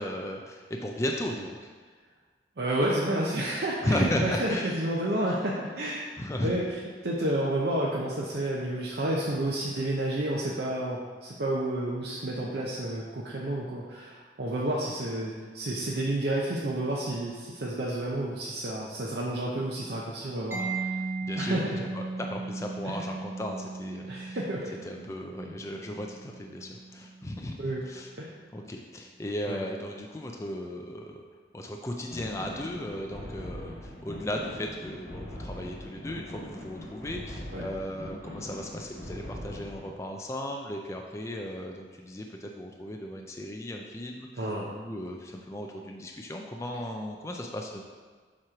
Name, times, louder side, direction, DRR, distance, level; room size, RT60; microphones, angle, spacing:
voice 1, 0.0-1.7 3.8-4.7 6.2-6.5 21.2-24.4 24.8-28.1 28.5-31.2 31.5-47.8, left 1 dB, 15° left, 1 dB, 0.3 m, -35 dB
voice 2, 2.6-20.9 21.4-21.8 22.8-23.0 24.1-24.7 25.4-25.6 27.6-27.8 28.2-28.3 29.5-29.6 37.5-37.7 44.4-44.7, right 1 dB, 65° right, -4 dB, 0.7 m, -30 dB
Mallet percussion, 20.5-28.0, right 3 dB, 10° right, 0.7 m, -37 dB
sound 1, 32.1-39.9, left 1 dB, 60° left, 1.6 m, -41 dB
7.3 x 3.0 x 4.9 m, 1.5 s
head